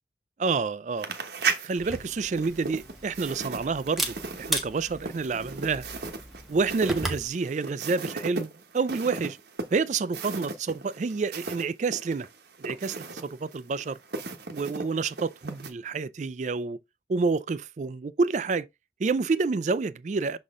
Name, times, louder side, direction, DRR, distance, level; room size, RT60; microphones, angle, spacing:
voice 1, 0.4-1.1 1.6-5.9 6.5-9.4 9.7-12.3 12.6-14.0 14.5-16.8 17.1-18.7 19.0-20.4, right 4 dB, 40° right, 0.3 m, -28 dB
sound 1, 1.0-11.7 11.9-15.7, right 4 dB, 60° right, 1.1 m, -36 dB
Camera, 1.8-7.3, right 1 dB, ahead, 0.8 m, -36 dB
6.4 x 4.1 x 3.6 m
head